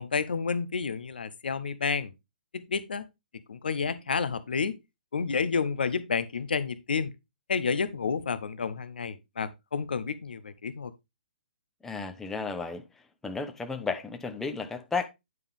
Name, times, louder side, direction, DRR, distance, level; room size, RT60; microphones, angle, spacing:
voice 1, 0.0-2.1 2.5-3.0 3.5-4.7 5.1-7.1 7.5-10.9, left 5 dB, 70° left, 0.7 m, -30 dB
voice 2, 11.8-12.8 13.2-15.1, left 4 dB, 5° left, 0.8 m, -33 dB
9.4 x 5.3 x 3.5 m
figure-of-eight pair, 130°, 5 cm